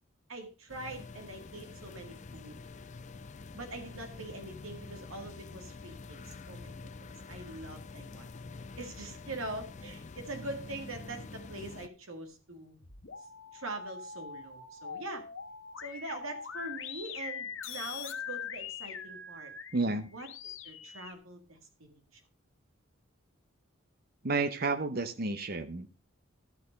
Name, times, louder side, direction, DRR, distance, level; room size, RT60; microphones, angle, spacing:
voice 1, 0.3-2.6 3.5-8.3 8.8-12.8 13.5-15.2 15.8-19.5 20.1-21.6 21.9-22.2, right 2 dB, 90° right, 5 dB, 2.0 m, -43 dB
sound 1, 0.7-11.9, left 3 dB, 35° left, 0.6 m, -46 dB
sound 2, 12.7-21.1, left 7 dB, 70° left, 1.4 m, -43 dB
voice 2, 19.7-20.1 24.2-25.9, right 3 dB, 50° right, 10 dB, 0.9 m, -31 dB
13.0 x 6.7 x 5.2 m, 0.33 s
head